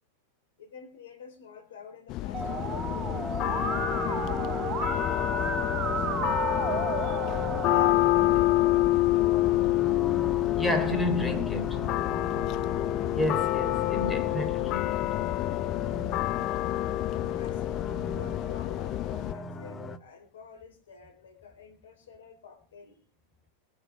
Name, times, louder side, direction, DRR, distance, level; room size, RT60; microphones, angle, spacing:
voice 1, 0.6-3.3 3.8-6.3 7.4-9.8 17.2-17.8 18.1-23.0, left 5 dB, 70° left, 4.5 m, -49 dB
sound 1, 2.1-19.3, left 17 dB, 45° left, 0.9 m, -28 dB
Musical instrument, 2.3-7.9, right 6 dB, 30° right, 1.5 m, -33 dB
sound 2, 2.4-20.0, left 3 dB, 20° left, 1.6 m, -39 dB
voice 2, 10.3-11.9 13.1-15.1, left 1 dB, 5° left, 3.8 m, -31 dB
22.5 x 9.4 x 4.8 m
figure-of-eight pair, 95°, 0 cm